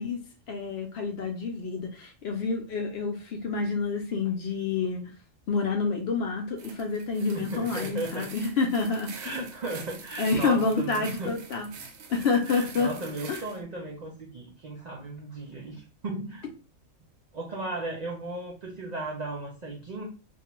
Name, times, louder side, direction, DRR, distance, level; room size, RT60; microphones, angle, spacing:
voice 1, 0.0-5.0 5.5-9.5 10.2-11.7 12.1-12.9 13.3-13.4, left 4 dB, 65° left, 3 dB, 0.7 m, -28 dB
sound 1, 6.6-13.6, right 5 dB, 85° right, 1.0 m, -45 dB
voice 2, 7.3-8.3 9.1-11.3 12.4-16.4 17.3-20.0, right 2 dB, 65° right, -1 dB, 0.4 m, -36 dB
2.4 x 2.2 x 2.9 m, 0.33 s
omnidirectional pair, 1.4 m